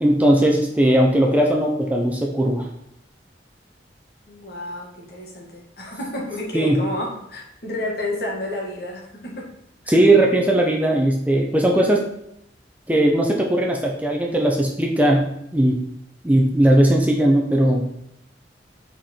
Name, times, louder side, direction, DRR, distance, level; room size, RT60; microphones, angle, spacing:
voice 1, 0.0-2.7 6.5-6.8 9.9-12.1 12.9-15.2 15.5-15.8 16.2-17.9, right 1 dB, 10° right, 0 dB, 0.6 m, -18 dB
voice 2, 4.3-9.5 9.8-10.0, left 1 dB, 60° left, -2 dB, 1.7 m, -30 dB
5.1 x 4.5 x 4.4 m, 0.76 s
head